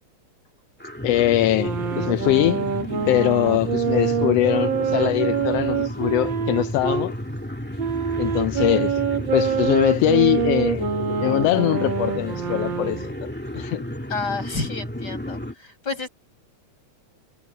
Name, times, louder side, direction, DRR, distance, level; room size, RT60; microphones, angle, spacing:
sound 1, 0.8-15.5, equal, 5° left, 0.8 m, -32 dB
voice 1, 1.0-2.6 3.1-7.1 8.2-9.0 9.3-10.9 11.2-13.8, left 15 dB, 80° left, 1.4 m, -22 dB
sound 2, 1.4-7.1 7.8-13.1, right 7 dB, 45° right, 2.0 m, -25 dB
voice 2, 14.1-16.1, left 4 dB, 35° left, 6.4 m, -30 dB
omnidirectional pair, 3.4 m